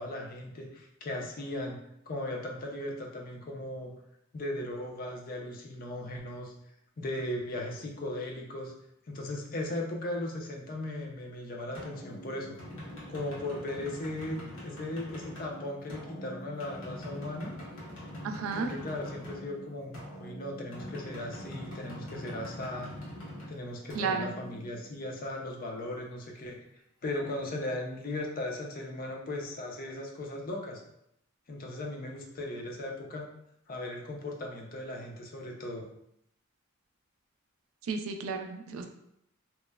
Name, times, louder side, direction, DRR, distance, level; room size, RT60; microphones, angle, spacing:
voice 1, 0.0-1.8 2.1-3.9 4.3-6.5 7.0-8.7 9.1-12.6 13.1-17.5 18.6-22.9 23.5-26.6 27.0-30.8 31.5-33.3 33.7-35.9, left 1 dB, 45° left, 0 dB, 0.4 m, -37 dB
sound 1, 11.7-25.3, equal, 70° left, 0.9 m, -43 dB
voice 2, 18.2-18.7 23.9-24.3 37.9-38.9, right 5 dB, 80° right, 4 dB, 0.3 m, -32 dB
2.9 x 2.0 x 2.2 m, 0.76 s
head